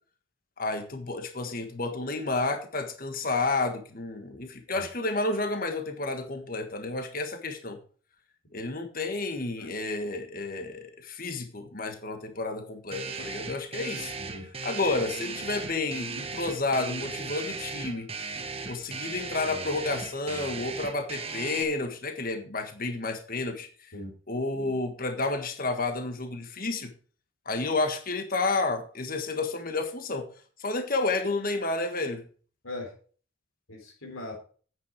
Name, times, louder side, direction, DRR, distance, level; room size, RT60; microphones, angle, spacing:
voice 1, 0.6-7.8 8.5-14.1 14.6-18.1 18.7-23.9 24.3-26.9 27.4-30.3 30.6-32.3, left 3 dB, 45° left, 7 dB, 1.5 m, -31 dB
sound 1, 12.9-21.6, right 4 dB, 30° right, 1.3 m, -37 dB
voice 2, 33.7-34.4, left 2 dB, 85° left, 1 dB, 3.8 m, -40 dB
9.5 x 9.3 x 4.6 m, 0.41 s
head